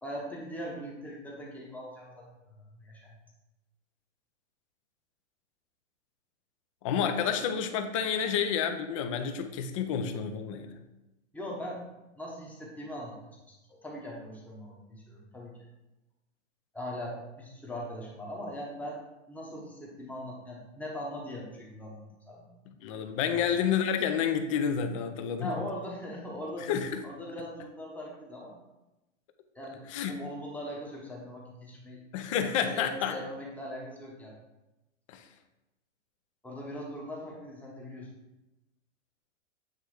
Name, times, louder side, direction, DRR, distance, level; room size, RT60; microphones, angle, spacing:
voice 1, 0.0-3.2 11.3-11.8 12.2-13.2 13.5-15.6 16.7-19.0 19.3-22.5 23.3-23.5 25.4-26.7 27.0-28.5 29.5-32.0 32.7-34.3 36.4-38.1, equal, 5° left, -3 dB, 0.9 m, -40 dB
voice 2, 6.8-10.8 22.7-25.7 26.6-27.0 29.9-30.1 32.1-33.1 35.1-35.2, left 7 dB, 30° left, 7 dB, 0.5 m, -30 dB
8.3 x 3.3 x 4.8 m, 0.99 s
hypercardioid pair, 145°, 37 cm